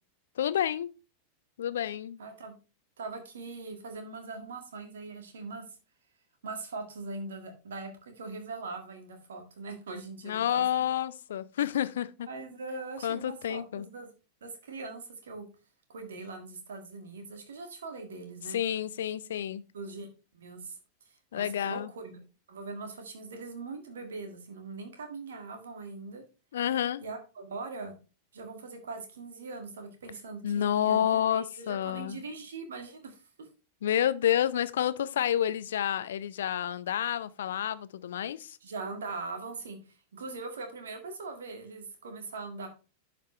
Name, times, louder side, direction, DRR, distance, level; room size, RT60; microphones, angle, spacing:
voice 1, 0.4-0.9 1.6-2.2 10.2-12.3 13.0-13.9 18.5-19.6 21.3-21.9 26.5-27.0 30.4-32.2 33.8-38.6, left 10 dB, 60° left, 0.5 m, -29 dB
voice 2, 2.2-2.5 3.0-5.6 6.4-10.9 12.3-14.1 14.4-15.5 15.9-18.6 19.7-20.1 20.3-20.8 21.1-22.2 22.5-26.2 27.0-27.9 28.3-33.5 38.6-42.7, right 3 dB, 65° right, 1.8 m, -41 dB
11.0 x 5.2 x 3.2 m
figure-of-eight pair, 90°, 0 cm